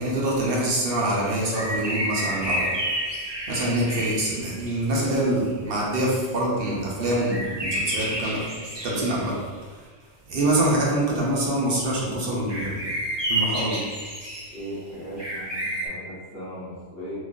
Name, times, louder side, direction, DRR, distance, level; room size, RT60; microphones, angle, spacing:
voice 1, 0.0-2.8 3.5-8.5 8.8-9.4 10.3-12.8 13.3-13.8, right 1 dB, 60° right, -4 dB, 0.9 m, -25 dB
sound 1, 1.5-4.8 7.3-9.3 12.5-14.7 15.2-15.9, right 1 dB, 25° right, 0.8 m, -30 dB
voice 2, 14.5-17.2, equal, 65° left, -7 dB, 1.3 m, -37 dB
3.6 x 3.1 x 2.5 m, 1.4 s
omnidirectional pair, 1.1 m